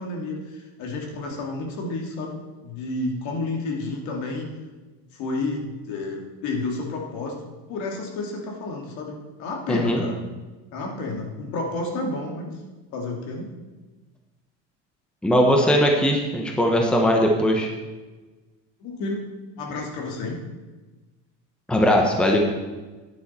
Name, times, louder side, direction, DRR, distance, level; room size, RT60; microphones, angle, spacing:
voice 1, 0.0-4.5 5.1-7.3 7.7-10.2 10.7-12.5 12.9-13.5 18.8-19.2 19.6-20.4, left 2 dB, 65° left, 1 dB, 2.4 m, -30 dB
voice 2, 9.7-10.0 15.2-17.7 21.7-22.4, equal, 5° left, 1 dB, 0.9 m, -19 dB
11.0 x 9.7 x 4.3 m, 1.2 s
cardioid pair, 155°, 32 cm